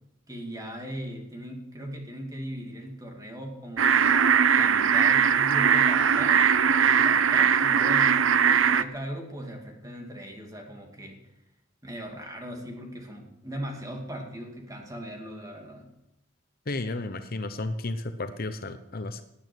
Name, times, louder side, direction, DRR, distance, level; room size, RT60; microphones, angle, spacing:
voice 1, 0.3-4.3 4.5-11.2 11.8-15.9, equal, 15° right, 1 dB, 2.5 m, -39 dB
sound 1, 3.8-8.8, right 7 dB, 70° right, 0.6 m, -20 dB
voice 2, 16.7-19.2, left 2 dB, 45° left, 9 dB, 0.8 m, -33 dB
18.0 x 8.8 x 6.2 m, 0.85 s
head